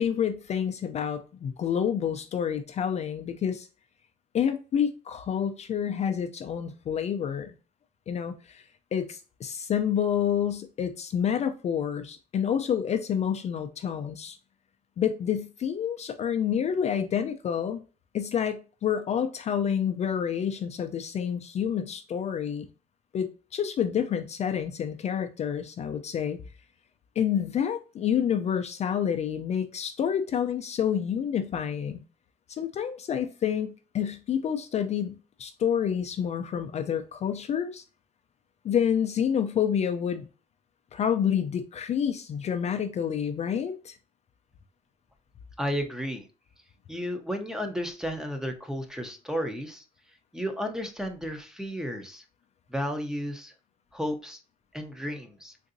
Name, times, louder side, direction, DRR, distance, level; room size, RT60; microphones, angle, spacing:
voice 1, 0.0-3.7 4.3-7.5 8.1-8.6 8.9-14.4 15.0-17.8 18.1-22.7 23.1-26.4 27.2-32.0 32.5-37.8 38.6-40.2 40.9-44.0, left 8 dB, 40° left, 0.4 m, -28 dB
voice 2, 45.6-46.3 46.9-49.8 50.3-52.2 52.7-53.5 53.9-54.4 54.7-55.5, equal, 5° right, 0.6 m, -33 dB
3.8 x 2.6 x 2.5 m
cardioid pair, 110°, 17 cm